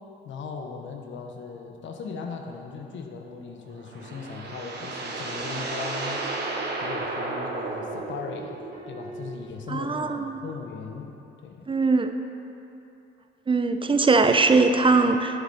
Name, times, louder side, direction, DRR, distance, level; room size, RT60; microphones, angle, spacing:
voice 1, 0.2-6.4 6.8-11.1 11.4-11.7, left 5 dB, 70° left, 3 dB, 1.1 m, -38 dB
sound 1, 3.7-8.8, right 3 dB, 55° right, 1.3 m, -33 dB
sound 2, 5.3-8.0 8.7-9.6, equal, 45° left, 1.7 m, -45 dB
voice 2, 9.7-10.4 11.7-12.1 13.5-15.4, right 3 dB, 25° right, 7 dB, 0.5 m, -21 dB
11.0 x 7.2 x 4.2 m, 2.9 s
cardioid pair, 90°, 20 cm